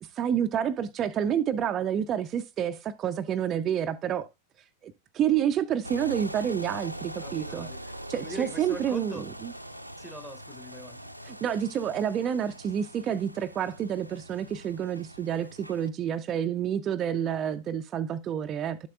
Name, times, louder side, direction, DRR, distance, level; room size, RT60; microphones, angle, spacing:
voice 1, 0.0-4.3 4.8-7.7 8.1-9.5 11.2-18.9, right 9 dB, 30° right, 0.4 m, -29 dB
sound 1, 5.8-15.9, right 1 dB, 90° right, 0.6 m, -42 dB
voice 2, 7.2-7.8 8.2-9.2 10.0-11.0, left 1 dB, 5° left, 0.9 m, -42 dB
11.5 x 7.5 x 2.3 m
figure-of-eight pair, 90°, 0 cm